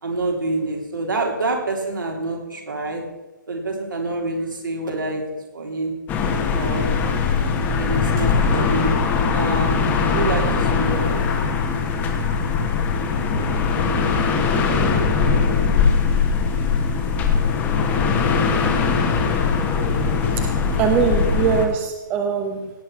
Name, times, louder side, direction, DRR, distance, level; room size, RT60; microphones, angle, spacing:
voice 1, 0.0-3.0 3.5-5.2 5.5-5.9 6.5-6.9 7.8-9.0 9.3-11.3, right 2 dB, 75° right, 1 dB, 3.3 m, -27 dB
sound 1, 6.1-21.7, left 5 dB, 15° left, 1.3 m, -20 dB
voice 2, 20.8-22.7, right 7 dB, 20° right, 5 dB, 0.9 m, -22 dB
17.0 x 6.1 x 5.8 m, 1.1 s
figure-of-eight pair, 140°, 11 cm